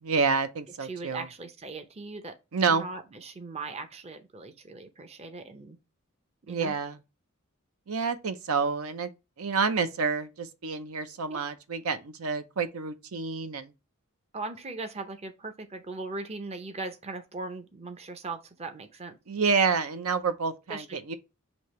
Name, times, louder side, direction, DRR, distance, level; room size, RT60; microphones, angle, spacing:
voice 1, 0.0-1.3 2.5-2.9 6.5-7.0 7.9-9.1 9.4-13.7 19.3-21.1, right 5 dB, 85° right, 0.6 m, -28 dB
voice 2, 0.8-2.3 2.7-5.8 6.5-6.7 11.3-11.4 14.3-19.2 20.7-21.0, right 3 dB, 30° right, 0.6 m, -39 dB
6.2 x 2.8 x 3.0 m
head